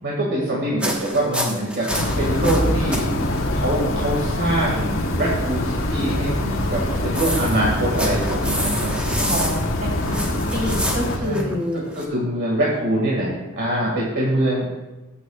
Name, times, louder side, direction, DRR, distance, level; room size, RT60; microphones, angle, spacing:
voice 1, 0.0-1.9 2.2-3.1 3.5-8.9 11.2-14.7, right 1 dB, 60° right, -4 dB, 2.2 m, -24 dB
sound 1, 0.8-3.0 3.3-3.5 4.0-4.1 6.8-12.1, equal, 5° right, 1.4 m, -28 dB
sound 2, 1.9-11.2, left 1 dB, 80° left, 1.4 m, -24 dB
voice 2, 9.2-10.2 10.5-11.9, left 1 dB, 40° right, -3 dB, 3.6 m, -27 dB
19.5 x 8.2 x 2.5 m, 1.1 s
head